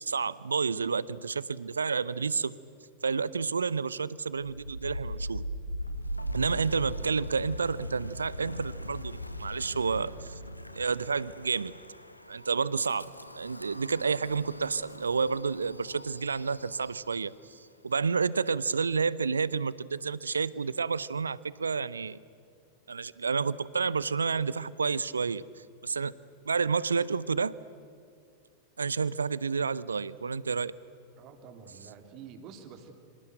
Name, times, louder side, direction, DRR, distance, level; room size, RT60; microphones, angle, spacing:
voice 1, 0.0-2.5 3.0-5.4 6.3-10.4 10.8-11.8 12.3-22.2 22.9-26.2 26.5-27.6 28.8-30.7, right 5 dB, 75° right, 20 dB, 0.7 m, -30 dB
Wind, 4.4-17.3, equal, 90° left, 1.2 m, -40 dB
voice 2, 31.2-32.9, right 6 dB, 40° right, 7 dB, 3.0 m, -48 dB
29.0 x 25.5 x 7.9 m, 2.2 s
figure-of-eight pair, 90°, 0 cm